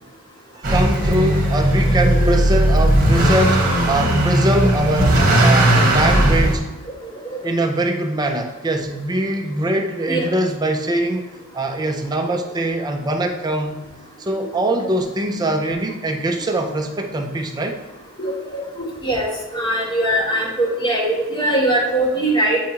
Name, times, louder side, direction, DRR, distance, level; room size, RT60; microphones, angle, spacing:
voice 1, 0.5-6.6 7.4-11.3 11.5-13.8 14.2-17.8, right 1 dB, 20° right, 4 dB, 0.4 m, -22 dB
Motor vehicle (road) / Accelerating revving vroom, 0.6-6.6, right 1 dB, 40° right, 1.2 m, -16 dB
voice 2, 2.0-2.4 7.3-7.4 10.1-10.3 18.2-19.3 19.5-22.6, right 1 dB, 20° left, -4 dB, 1.4 m, -21 dB
7.3 x 4.6 x 2.8 m, 1.1 s
head